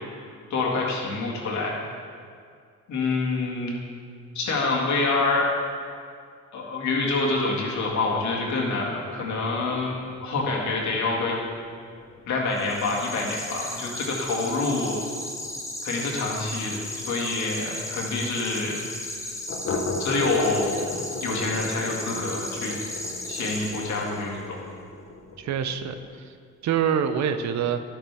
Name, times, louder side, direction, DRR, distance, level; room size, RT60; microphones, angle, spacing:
voice 1, 0.5-1.8 2.9-3.8 4.3-5.5 6.5-9.9 10.2-11.4 12.3-15.0 15.8-18.8 20.0-20.8 21.2-22.7 23.3-24.4, left 3 dB, 70° left, -2 dB, 2.0 m, -26 dB
sound 1, 7.7-17.0 17.3-17.4 17.7-17.8 18.2-18.3 19.5-26.2, left 3 dB, 45° left, 1.0 m, -38 dB
sound 2, 12.5-24.4, left 1 dB, 10° left, 0.8 m, -35 dB
voice 2, 25.4-26.3 26.6-27.8, right 8 dB, 65° right, 9 dB, 0.6 m, -26 dB
11.0 x 7.0 x 3.5 m, 2.2 s
cardioid pair, 90°, 30 cm